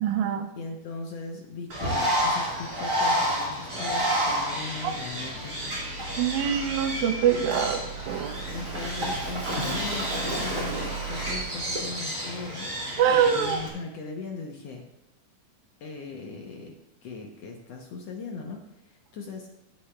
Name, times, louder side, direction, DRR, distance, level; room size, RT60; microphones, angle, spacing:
voice 1, 0.0-0.5 4.8-4.9 6.2-7.8 8.1-8.4 13.0-13.6, right 8 dB, 80° right, 7 dB, 1.8 m, -24 dB
voice 2, 0.6-5.6 8.5-12.7 13.1-14.9 15.8-16.7 17.0-19.5, left 4 dB, 70° left, 2 dB, 1.6 m, -39 dB
Bird, 1.7-13.7, equal, 25° right, 4.4 m, -30 dB
sound 1, 3.9-11.4, right 7 dB, 5° left, 2.3 m, -41 dB
17.0 x 8.4 x 2.3 m, 0.95 s
omnidirectional pair, 3.8 m